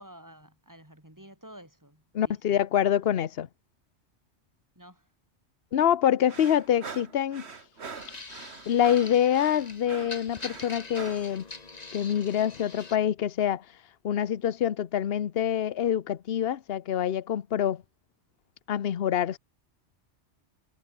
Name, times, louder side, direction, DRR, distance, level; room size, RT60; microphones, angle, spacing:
voice 1, 0.0-2.6 4.8-5.1, right 1 dB, 15° right, 6.0 m, -51 dB
voice 2, 2.1-3.5 5.7-7.5 8.7-11.5 11.9-13.7 14.0-17.8 18.7-19.4, left 10 dB, 60° left, 1.0 m, -26 dB
sound 1, 6.3-11.3, right 5 dB, 65° right, 1.9 m, -43 dB
sound 2, 7.9-13.0, left 3 dB, 35° left, 1.8 m, -44 dB
omnidirectional pair, 1.2 m